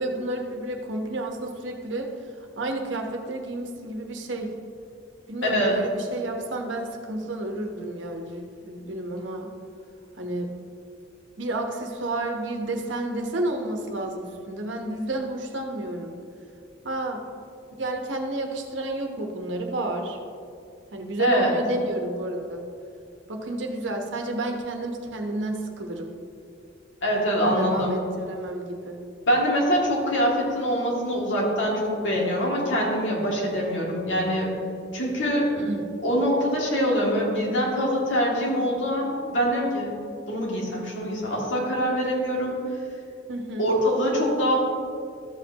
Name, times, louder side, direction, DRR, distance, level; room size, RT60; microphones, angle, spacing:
voice 1, 0.0-2.1 2.6-4.5 5.3-9.5 10.2-10.5 11.4-16.2 16.8-17.2 17.8-20.2 20.9-22.6 23.3-26.1 27.4-29.0 35.6-35.9 43.3-43.7, right 1 dB, 80° right, 3 dB, 1.1 m, -30 dB
voice 2, 5.4-5.8 21.2-21.5 27.0-28.0 29.3-34.5 34.9-35.5 36.0-39.9 40.3-42.6 43.6-44.5, equal, 85° left, -3 dB, 2.4 m, -24 dB
13.5 x 7.7 x 2.9 m, 2.5 s
head